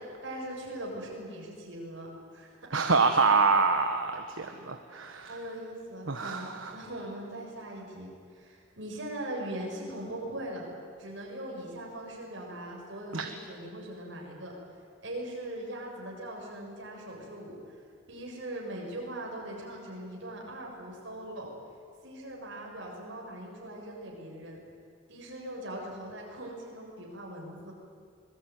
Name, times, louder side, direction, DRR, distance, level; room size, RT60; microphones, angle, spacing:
voice 1, 0.2-2.5 4.4-4.7 5.3-10.7 11.0-14.5 15.0-17.6 18.1-21.5 22.0-24.6 25.1-27.7, right 1 dB, 65° right, -1 dB, 7.1 m, -40 dB
voice 2, 2.7-5.4 6.1-6.7 13.1-13.3, right 4 dB, 80° right, 5 dB, 1.5 m, -26 dB
25.5 x 20.5 x 9.5 m, 2.2 s
head